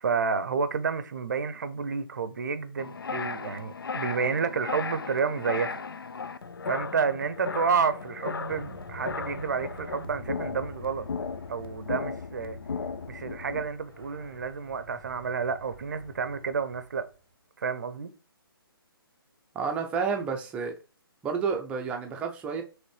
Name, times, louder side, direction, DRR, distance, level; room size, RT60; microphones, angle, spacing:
voice 1, 0.0-5.8 6.7-11.0 11.5-12.6 13.1-17.1 17.6-18.1, right 5 dB, 50° right, 0.6 m, -30 dB
sound 1, 2.8-13.7, left 5 dB, 65° left, 0.4 m, -36 dB
sound 2, 8.5-17.2, right 1 dB, 90° left, 2.2 m, -49 dB
voice 2, 19.5-20.7 21.2-22.6, right 5 dB, 10° right, 0.5 m, -30 dB
5.0 x 3.2 x 3.2 m
figure-of-eight pair, 135°, 13 cm